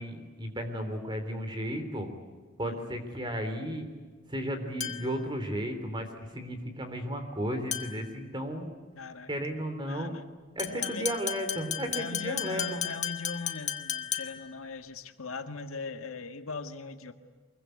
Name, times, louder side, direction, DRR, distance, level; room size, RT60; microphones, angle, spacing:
voice 1, 0.0-2.1 2.6-3.9 4.3-8.6 9.3-10.1 10.5-12.8, equal, 20° right, 7 dB, 3.5 m, -34 dB
sound 1, 4.8-5.2 7.7-8.1 10.6-14.5, left 9 dB, 35° left, 1.5 m, -35 dB
voice 2, 9.0-9.3 9.9-10.3 10.7-11.2 11.9-17.1, left 4 dB, 85° left, 7 dB, 1.8 m, -39 dB
24.5 x 22.5 x 9.5 m, 1.5 s
head